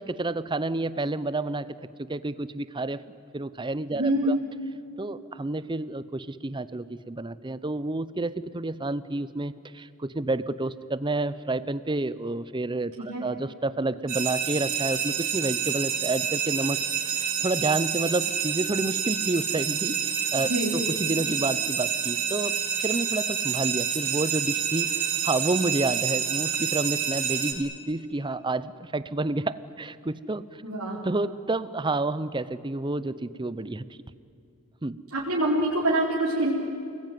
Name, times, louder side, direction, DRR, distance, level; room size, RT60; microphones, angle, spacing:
voice 1, 0.0-1.7 2.0-4.4 5.0-16.8 17.1-30.5 31.0-33.8 34.8-35.0, right 2 dB, 20° right, 15 dB, 0.7 m, -29 dB
voice 2, 3.9-4.4 13.0-13.2 20.4-20.8 30.6-31.0 35.1-36.5, right 1 dB, 75° right, -5 dB, 4.0 m, -25 dB
sound 1, 14.1-27.5, right 8 dB, 45° right, 4.5 m, -28 dB
29.5 x 20.5 x 9.3 m, 2.5 s
head